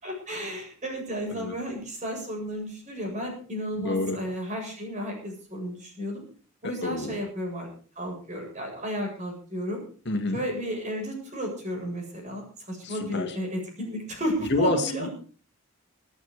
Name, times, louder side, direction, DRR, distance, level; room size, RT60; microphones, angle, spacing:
voice 1, 0.0-6.2 6.6-7.7 8.0-9.8 10.3-15.1, equal, 30° right, 2 dB, 7.4 m, -33 dB
voice 2, 3.8-4.2 6.6-7.2 10.1-10.4 12.8-13.4 14.5-15.1, left 2 dB, 50° left, 5 dB, 2.1 m, -28 dB
25.5 x 9.1 x 4.8 m, 0.40 s
head